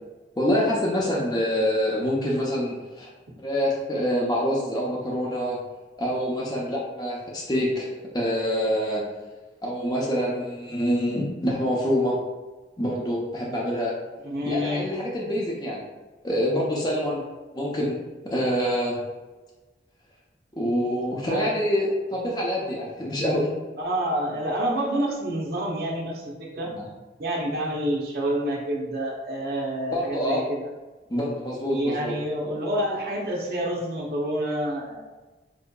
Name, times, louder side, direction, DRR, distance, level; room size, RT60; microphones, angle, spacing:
voice 1, 0.4-3.1 3.4-5.6 6.0-7.9 8.1-9.0 9.6-12.2 12.8-13.9 14.5-15.8 16.2-17.2 17.5-18.0 18.2-19.0 20.5-23.5 26.7-26.8 29.9-30.4 31.1-32.2, equal, 20° left, -4 dB, 0.6 m, -26 dB
voice 2, 14.2-14.9 21.3-21.5 23.8-26.7 27.2-30.7 31.7-35.0, right 1 dB, 60° right, -3 dB, 0.6 m, -28 dB
4.6 x 2.7 x 2.2 m, 1.2 s
head